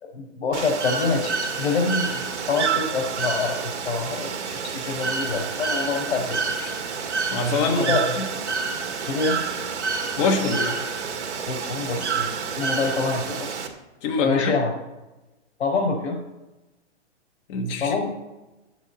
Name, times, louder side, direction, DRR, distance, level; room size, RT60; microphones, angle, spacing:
voice 1, 0.0-6.7 7.6-8.1 9.1-9.4 11.5-13.6 14.2-14.7 15.6-16.2 17.8-18.1, left 4 dB, 70° left, 3 dB, 4.6 m, -26 dB
Bird / Water, 0.5-13.7, right 5 dB, 80° right, 2.2 m, -28 dB
voice 2, 7.3-8.0 10.2-10.8 14.0-14.5 17.5-18.0, left 3 dB, 25° left, 1 dB, 1.5 m, -24 dB
10.0 x 8.4 x 8.1 m, 1.1 s
hypercardioid pair, 165°, 34 cm